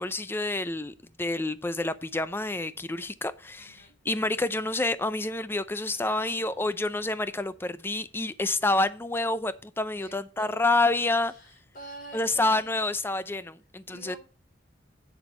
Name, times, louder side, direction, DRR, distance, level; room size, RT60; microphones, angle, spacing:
voice 1, 0.0-3.8 4.1-11.3 12.1-14.2, left 2 dB, 10° left, 0.5 m, -28 dB
voice 2, 3.6-4.0 5.9-6.8 10.0-10.1 10.4-10.9 11.3-12.7 13.9-14.2, right 1 dB, 45° left, 4.2 m, -47 dB
8.1 x 7.0 x 5.2 m
head